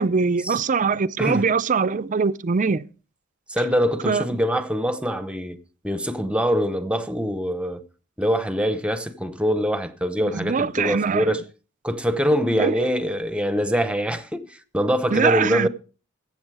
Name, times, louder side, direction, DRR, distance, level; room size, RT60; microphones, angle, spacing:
voice 1, 0.0-2.8 4.0-4.4 10.2-11.3 12.6-12.7 15.1-15.7, right 5 dB, 40° right, 0.5 m, -22 dB
voice 2, 1.2-1.5 3.5-5.6 5.8-7.8 8.2-11.4 11.8-15.7, equal, 5° right, 0.8 m, -24 dB
15.5 x 7.2 x 4.8 m
head